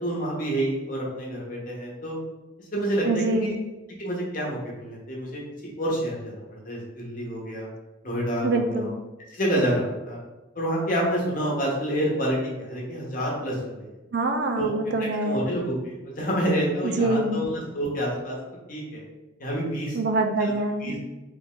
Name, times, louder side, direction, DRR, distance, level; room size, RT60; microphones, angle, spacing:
voice 1, 0.0-2.2 2.7-3.5 4.0-5.4 5.8-7.7 8.0-8.9 9.3-10.2 10.5-13.9 14.6-14.7 15.2-18.4 18.7-19.0 19.4-20.0 20.4-20.5 20.8-21.0, equal, 45° left, -3 dB, 0.9 m, -28 dB
voice 2, 3.0-3.6 8.4-8.9 14.1-15.4 16.8-17.4 19.9-21.0, right 2 dB, 60° right, 5 dB, 0.4 m, -25 dB
3.4 x 2.4 x 3.6 m, 1.1 s
head